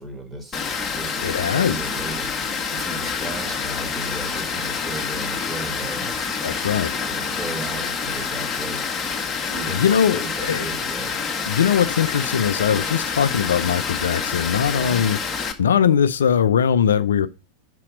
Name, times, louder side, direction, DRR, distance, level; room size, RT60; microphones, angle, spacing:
voice 1, 0.0-6.6 7.1-8.9 9.5-11.1 14.8-15.0, right 2 dB, 10° right, 1.8 m, -36 dB
Water, 0.5-15.5, left 5 dB, 20° left, 1.3 m, -27 dB
voice 2, 1.2-1.8 6.4-6.9 9.7-10.7 11.5-15.2 15.6-17.3, left 8 dB, 65° left, 0.4 m, -20 dB
5.7 x 4.9 x 6.3 m
figure-of-eight pair, 90°, 0 cm